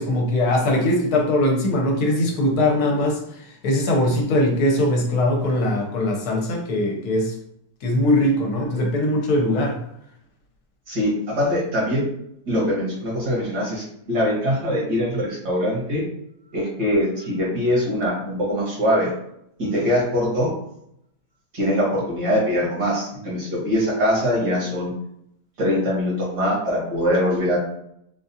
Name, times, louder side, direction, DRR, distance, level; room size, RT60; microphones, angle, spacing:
voice 1, 0.0-7.3 7.8-9.8, left 1 dB, 75° left, 0 dB, 1.2 m, -21 dB
voice 2, 10.9-12.0 12.5-16.0 16.5-19.1 19.6-20.5 21.5-24.9 25.6-27.6, equal, 75° right, -4 dB, 1.8 m, -22 dB
4.0 x 2.4 x 2.7 m, 0.75 s
omnidirectional pair, 1.7 m